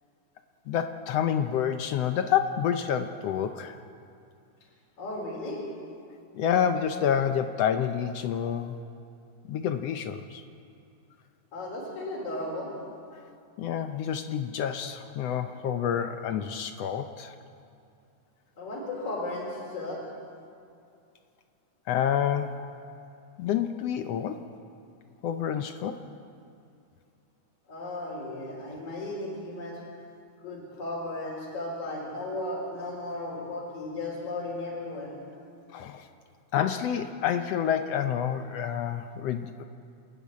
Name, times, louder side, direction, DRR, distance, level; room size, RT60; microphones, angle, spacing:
voice 1, 0.7-3.8 6.3-8.8 9.5-10.4 13.6-17.3 21.9-22.6 23.4-24.5 25.2-26.0 35.7-36.1 36.5-39.6, left 9 dB, 75° left, 8 dB, 1.5 m, -28 dB
voice 2, 5.0-5.7 11.5-12.7 13.9-14.0 18.6-20.0 27.7-29.8 30.4-35.1, left 2 dB, 50° left, -4 dB, 4.7 m, -35 dB
27.0 x 11.0 x 9.5 m, 2.5 s
omnidirectional pair, 3.6 m